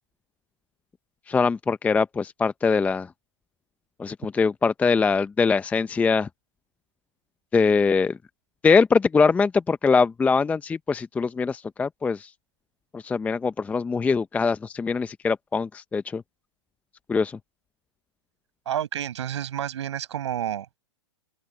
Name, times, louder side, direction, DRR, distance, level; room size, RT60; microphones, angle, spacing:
voice 1, 1.3-3.1 4.0-6.3 7.5-8.2 8.6-12.3 12.9-16.2 17.1-17.4, left 5 dB, 10° left, 0.6 m, -22 dB
voice 2, 18.6-20.8, right 10 dB, 70° right, 6.8 m, -30 dB
open air
hypercardioid pair, 130°, 15 cm